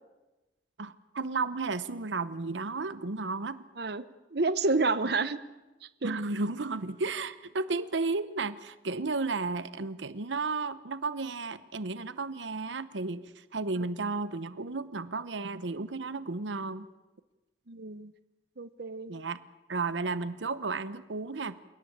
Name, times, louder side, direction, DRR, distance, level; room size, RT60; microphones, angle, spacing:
voice 1, 0.8-3.6 6.0-16.9 19.1-19.4 19.7-21.6, right 3 dB, 90° right, 15 dB, 0.9 m, -33 dB
voice 2, 4.3-5.4 6.0-6.1 17.7-18.1 18.6-19.1, right 3 dB, 60° right, 14 dB, 1.0 m, -29 dB
28.0 x 18.0 x 8.7 m, 1.1 s
head